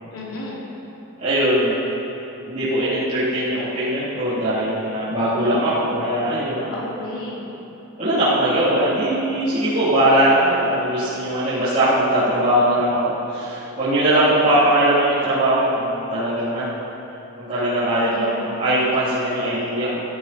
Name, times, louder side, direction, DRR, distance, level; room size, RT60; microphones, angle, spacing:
voice 1, 0.1-0.6 5.3-5.8 6.6-7.4 18.0-18.4, left 1 dB, 70° left, -5 dB, 3.4 m, -33 dB
voice 2, 1.2-1.8 2.5-6.7 8.0-16.8 17.4-20.0, right 1 dB, 35° right, -16 dB, 4.0 m, -20 dB
15.5 x 14.0 x 4.6 m, 2.9 s
head